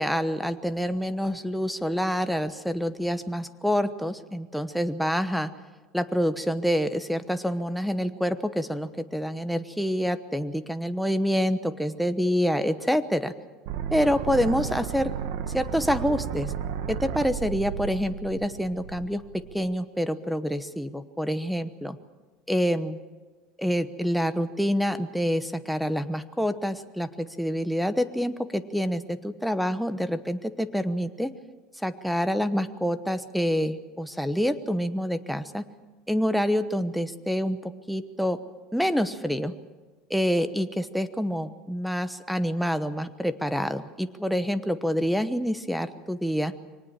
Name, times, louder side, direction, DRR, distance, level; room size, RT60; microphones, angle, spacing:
voice 1, 0.0-5.5 5.9-13.3 13.9-15.1 15.5-16.5 16.9-22.0 22.5-23.0 23.6-31.3 31.8-35.6 36.1-38.4 38.7-39.5 40.1-46.5, equal, ahead, 12 dB, 1.0 m, -27 dB
sound 1, 13.7-19.6, right 8 dB, 70° right, 1.5 m, -33 dB
24.0 x 19.0 x 7.4 m, 1.3 s
supercardioid pair, 135°, 0 cm